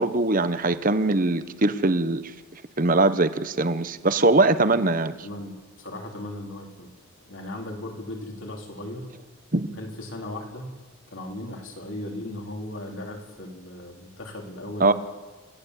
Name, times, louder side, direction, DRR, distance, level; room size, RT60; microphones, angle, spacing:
voice 1, 0.0-2.2 2.8-5.1 9.5-9.7 14.8-14.9, right 2 dB, 40° right, 12 dB, 1.0 m, -21 dB
voice 2, 5.2-6.9 7.2-9.1 9.8-10.8 11.1-14.9, left 1 dB, 60° left, 1 dB, 4.0 m, -37 dB
29.0 x 14.5 x 8.3 m, 1.3 s
head